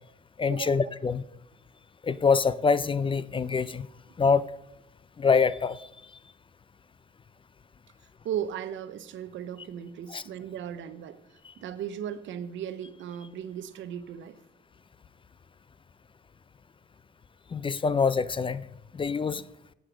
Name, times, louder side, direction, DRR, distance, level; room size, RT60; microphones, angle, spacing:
voice 1, 0.4-1.2 2.0-3.9 4.2-4.5 5.2-5.9 10.1-10.2 11.4-11.5 17.5-18.7 18.9-19.4, left 5 dB, 25° left, 17 dB, 0.4 m, -25 dB
voice 2, 8.2-11.2 11.6-14.4, right 9 dB, 75° right, 13 dB, 0.7 m, -36 dB
10.0 x 6.5 x 6.2 m, 0.86 s
cardioid pair, 90°, 20 cm